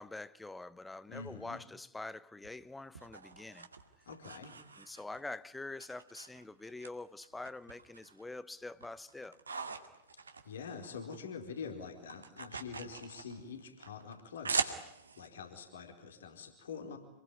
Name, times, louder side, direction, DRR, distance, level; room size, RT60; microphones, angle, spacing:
voice 1, 0.0-3.7 4.8-9.4, left 2 dB, 10° left, 1.1 m, -45 dB
voice 2, 1.1-1.6 4.1-4.6 10.4-14.8 15.2-17.0, left 5 dB, 65° left, 4.4 m, -45 dB
sound 1, 2.4-5.3 5.8-6.9 7.2-8.2 8.6-11.2 11.5-15.3, right 4 dB, 75° right, 2.1 m, -41 dB
27.5 x 21.0 x 9.7 m
figure-of-eight pair, 90°, 0 cm